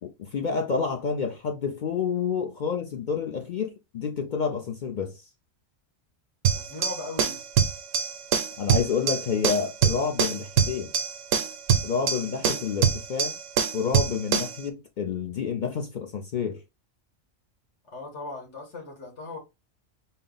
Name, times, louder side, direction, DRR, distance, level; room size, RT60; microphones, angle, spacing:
voice 1, 0.0-5.1 8.6-10.9 11.8-13.4 13.7-16.6, left 6 dB, 55° left, 0.5 m, -29 dB
sound 1, 6.4-14.6, right 7 dB, 90° right, 0.9 m, -25 dB
voice 2, 6.5-7.4 17.8-19.4, left 2 dB, 75° left, 2.0 m, -38 dB
4.0 x 2.0 x 3.8 m
omnidirectional pair, 1.2 m